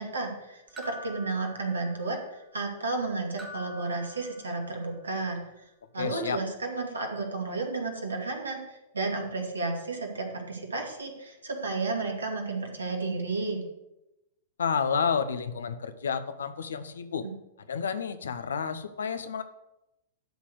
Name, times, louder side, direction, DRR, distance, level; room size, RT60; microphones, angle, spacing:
voice 1, 0.0-13.6 17.2-17.3, right 3 dB, 70° right, 2 dB, 2.3 m, -32 dB
sound 1, 0.8-2.2 3.4-4.8, equal, 15° right, 1.7 m, -46 dB
voice 2, 6.0-6.4 14.6-17.2 17.7-19.4, left 6 dB, 65° left, 11 dB, 0.9 m, -30 dB
12.0 x 4.2 x 8.0 m, 0.92 s
figure-of-eight pair, 100°, 0 cm